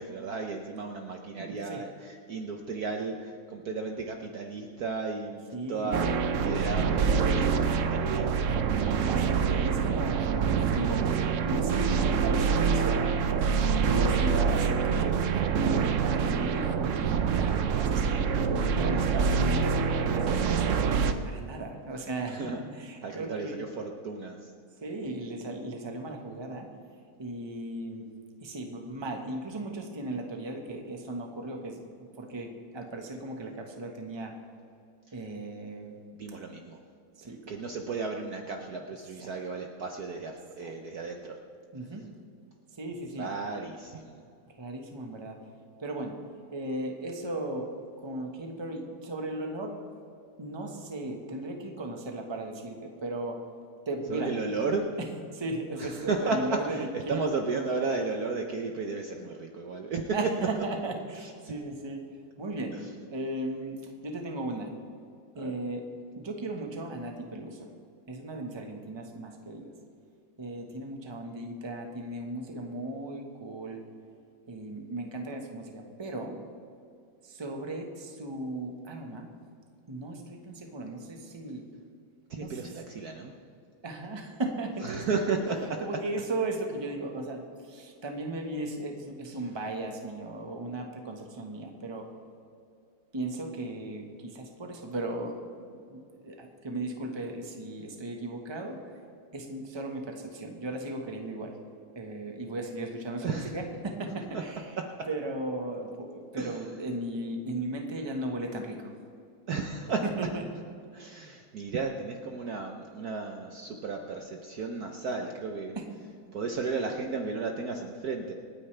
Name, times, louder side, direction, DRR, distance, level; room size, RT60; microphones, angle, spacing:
voice 1, 0.0-7.4 7.8-8.5 22.2-22.6 23.0-24.5 35.1-35.2 36.1-36.8 37.2-41.4 43.2-44.2 54.1-54.8 55.8-60.2 61.2-61.5 62.7-62.9 65.3-65.5 82.3-83.3 84.8-85.6 103.2-103.6 104.3-104.4 105.0-105.1 106.4-106.7 109.5-110.0 110.9-115.8 116.3-118.3, right 4 dB, 60° right, 3 dB, 1.2 m, -34 dB
voice 2, 5.5-6.0 9.0-22.4 22.8-23.6 24.8-26.7 27.2-28.1 28.4-34.3 35.1-36.0 37.2-37.4 39.2-39.3 40.6-40.7 41.7-42.0 42.7-43.3 44.6-45.4 45.8-46.2 46.5-47.7 48.0-49.8 50.4-53.4 53.8-54.3 55.3-57.4 60.1-62.0 62.4-62.8 63.1-63.8 64.0-64.7 65.4-65.8 66.2-67.7 68.1-69.7 70.4-73.8 74.5-76.4 77.2-79.3 79.9-81.6 82.4-82.7 83.8-85.4 85.8-92.1 93.1-95.4 95.7-98.8 99.3-101.5 101.9-104.6 105.1-108.9 110.2-110.4 115.7-115.8, right 2 dB, 15° right, 3 dB, 1.1 m, -36 dB
sound 1, 5.9-21.1, right 6 dB, 75° right, 0.7 m, -26 dB
27.0 x 9.4 x 3.3 m, 2.4 s
omnidirectional pair, 2.2 m